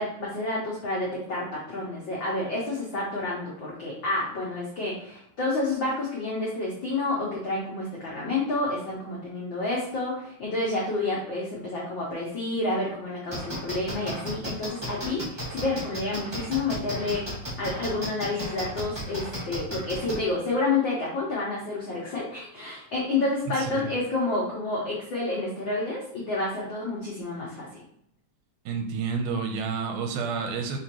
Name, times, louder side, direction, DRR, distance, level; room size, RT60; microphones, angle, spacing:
voice 1, 0.0-27.7, left 2 dB, 80° left, -5 dB, 1.0 m, -29 dB
sound 1, 13.3-20.2, equal, 30° right, 0.4 m, -34 dB
voice 2, 28.7-30.8, right 5 dB, 90° right, 4 dB, 2.2 m, -29 dB
5.6 x 3.0 x 2.9 m, 0.72 s
omnidirectional pair, 3.5 m